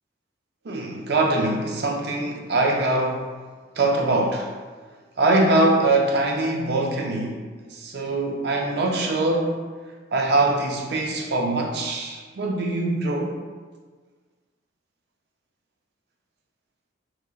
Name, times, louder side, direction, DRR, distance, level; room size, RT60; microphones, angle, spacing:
voice 1, 0.6-3.3 3.8-4.5 5.2-7.4 7.6-9.7 10.1-13.4, right 2 dB, 55° right, 0.4 m, -23 dB
3.7 x 2.8 x 2.3 m
head